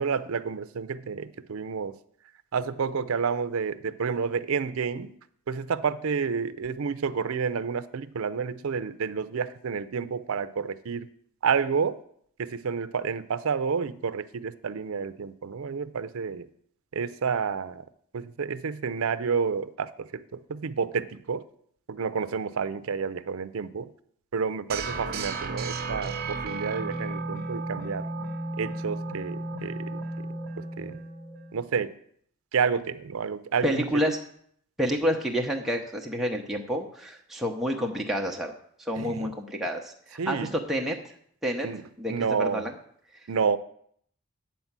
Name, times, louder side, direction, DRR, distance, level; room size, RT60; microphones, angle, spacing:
voice 1, 0.0-1.9 2.5-5.1 5.5-11.1 11.4-12.0 12.4-16.5 16.9-17.8 18.1-21.4 21.9-23.9 24.3-28.1 28.6-30.3 30.6-31.0 31.5-31.9 32.5-33.9 39.0-39.3 40.2-40.5 41.6-41.8 42.1-42.6 43.3-43.6, right 6 dB, 80° right, 14 dB, 0.5 m, -30 dB
sound 1, 24.7-31.6, right 3 dB, 45° right, 0.9 m, -34 dB
voice 2, 33.6-34.2 34.8-38.5 38.8-41.0 41.4-41.7 42.0-42.7, equal, ahead, 0 dB, 0.8 m, -29 dB
9.3 x 4.4 x 7.3 m, 0.65 s
head